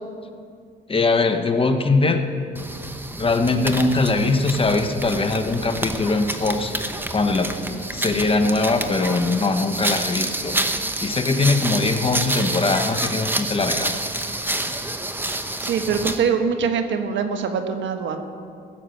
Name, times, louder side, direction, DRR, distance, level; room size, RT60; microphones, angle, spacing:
voice 1, 0.9-2.5 3.2-6.8 7.1-7.5 7.9-10.6 11.0-13.9, left 3 dB, 25° left, 6 dB, 1.1 m, -21 dB
sound 1, 2.6-16.3, right 1 dB, 10° right, 0.9 m, -28 dB
voice 2, 15.6-18.2, right 6 dB, 70° right, 6 dB, 1.2 m, -23 dB
15.5 x 6.8 x 7.8 m, 2.3 s
cardioid pair, 90°, 20 cm